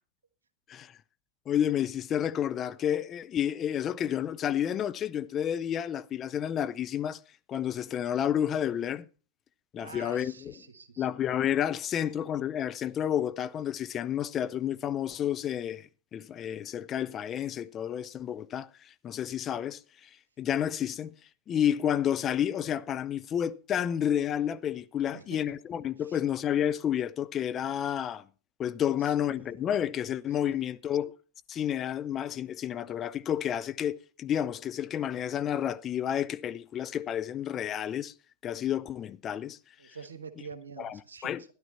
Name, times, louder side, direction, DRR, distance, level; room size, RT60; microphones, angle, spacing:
voice 1, 1.5-7.2 7.5-9.0 9.7-10.5 11.0-20.1 20.4-21.1 21.5-28.2 28.6-31.2 31.5-38.1 38.4-39.6 39.8-40.0 40.8-41.4, left 10 dB, 30° left, 0.5 m, -30 dB
voice 2, 9.8-11.1 25.0-25.4 26.0-26.2 28.9-29.6 30.3-30.6 39.8-41.5, right 5 dB, 70° right, 1.3 m, -47 dB
13.0 x 11.0 x 4.2 m
figure-of-eight pair, 90°, 0 cm